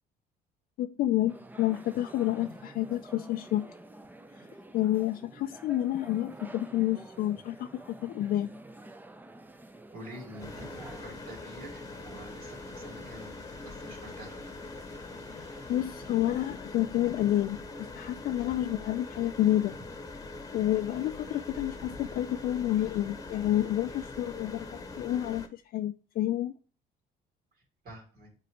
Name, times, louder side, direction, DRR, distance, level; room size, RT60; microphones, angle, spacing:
voice 1, 0.8-3.7 4.4-4.5 4.7-8.5 15.3-19.7 20.5-26.5, left 13 dB, 60° left, 0.4 m, -29 dB
sound 1, 1.3-11.0, right 2 dB, 10° right, 0.5 m, -49 dB
voice 2, 9.9-14.4 27.8-28.3, right 1 dB, 65° right, 2.8 m, -47 dB
sound 2, 10.4-25.5, left 3 dB, 20° left, 1.0 m, -43 dB
sound 3, 10.5-16.6, right 3 dB, 45° right, 2.2 m, -57 dB
8.5 x 4.1 x 3.2 m
cardioid pair, 110°, 17 cm